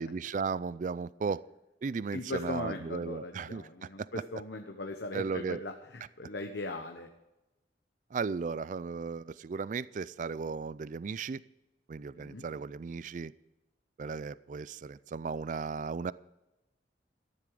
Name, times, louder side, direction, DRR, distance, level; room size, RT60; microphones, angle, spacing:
voice 1, 0.0-1.4 1.8-4.1 5.1-5.6 8.1-11.4 11.9-13.3 14.0-16.1, right 5 dB, 45° right, 18 dB, 0.4 m, -35 dB
voice 2, 2.1-5.7 6.2-7.1 12.2-12.4, left 2 dB, 75° left, 5 dB, 1.1 m, -39 dB
13.5 x 11.0 x 5.0 m, 0.99 s
head